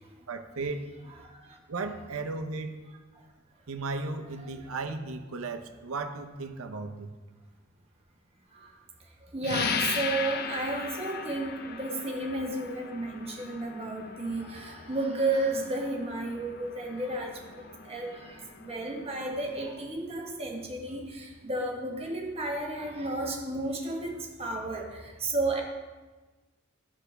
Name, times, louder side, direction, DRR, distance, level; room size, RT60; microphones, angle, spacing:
voice 1, 0.3-0.9 1.7-2.7 3.7-7.1, right 3 dB, 80° right, 6 dB, 0.7 m, -35 dB
voice 2, 9.3-18.4 18.6-25.6, right 2 dB, 30° right, 0 dB, 1.3 m, -32 dB
sound 1, 9.4-19.7, left 6 dB, 50° left, 0.5 m, -38 dB
13.5 x 5.0 x 3.4 m, 1.3 s
head